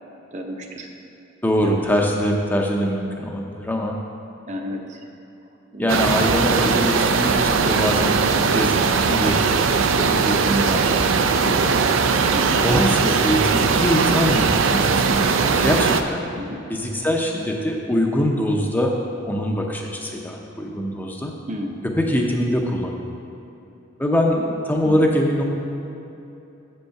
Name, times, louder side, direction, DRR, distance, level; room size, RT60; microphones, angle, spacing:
voice 1, 0.3-0.9 1.6-1.7 4.5-5.0 5.7-6.3 12.3-12.6 16.4-16.6 21.5-21.9 24.8-25.1, equal, 35° right, 2 dB, 0.6 m, -32 dB
voice 2, 1.4-4.0 5.8-8.7 9.0-9.4 9.9-11.7 12.6-16.2 16.7-18.9 19.3-21.4 21.8-23.0 24.0-25.4, equal, 10° left, 0 dB, 0.5 m, -23 dB
sound 1, 5.9-16.0, right 5 dB, 80° right, 0.4 m, -19 dB
7.2 x 5.3 x 5.7 m, 2.9 s
head